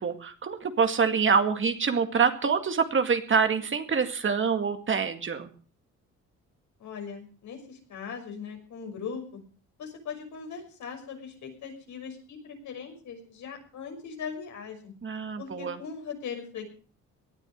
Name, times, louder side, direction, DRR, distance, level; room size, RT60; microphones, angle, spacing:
voice 1, 0.0-5.5 15.0-15.8, right 5 dB, 40° right, 7 dB, 2.1 m, -26 dB
voice 2, 6.8-9.4 9.8-14.9 15.4-16.6, left 6 dB, 70° left, 3 dB, 5.9 m, -39 dB
18.5 x 10.5 x 6.4 m, 0.41 s
cardioid pair, 90°, 30 cm